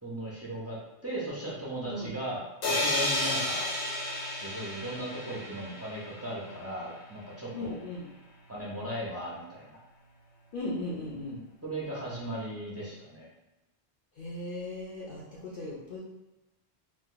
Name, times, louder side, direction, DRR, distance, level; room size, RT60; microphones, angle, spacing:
voice 1, 0.0-0.8 1.0-3.7 4.3-7.8 8.5-9.8 11.6-13.3, right 1 dB, 15° right, -7 dB, 0.7 m, -37 dB
sound 1, 2.6-6.4, left 1 dB, 90° left, 1.3 m, -32 dB
voice 2, 7.5-8.1 10.5-11.4 14.1-16.0, left 2 dB, 55° left, -5 dB, 0.7 m, -37 dB
2.5 x 2.5 x 3.8 m, 1.0 s
omnidirectional pair, 1.1 m